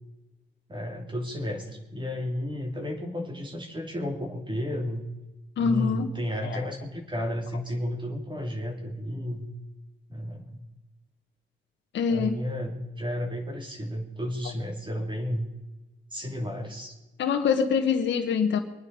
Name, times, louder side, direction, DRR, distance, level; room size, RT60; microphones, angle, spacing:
voice 1, 0.7-5.1 5.6-9.4 10.1-10.6 12.1-15.5 16.1-16.9, equal, 25° right, 1 dB, 2.9 m, -32 dB
voice 2, 5.6-6.1 6.4-6.6 11.9-12.4 17.2-18.6, left 6 dB, 65° left, 3 dB, 1.4 m, -24 dB
23.0 x 9.5 x 5.5 m, 1.1 s
cardioid pair, 90°, 20 cm